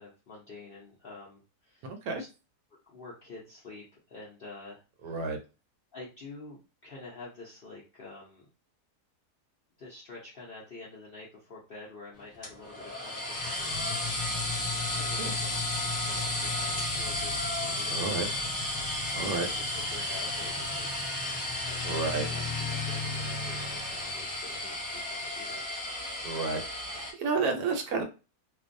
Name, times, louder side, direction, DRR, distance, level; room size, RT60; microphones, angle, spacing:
voice 1, 0.0-2.3 2.8-5.3 5.9-8.4 9.8-13.9 14.9-15.5 15.9-18.2 18.9-20.9 21.6-25.8, left 3 dB, 60° left, -5 dB, 0.6 m, -48 dB
voice 2, 5.0-5.4 15.2-15.3 17.9-18.3 19.1-19.5 21.8-22.3 26.2-28.0, right 4 dB, 75° right, 4 dB, 1.0 m, -31 dB
sound 1, 12.4-27.1, left 2 dB, 35° left, 0.9 m, -33 dB
2.5 x 2.3 x 2.5 m, 0.30 s
omnidirectional pair, 1.7 m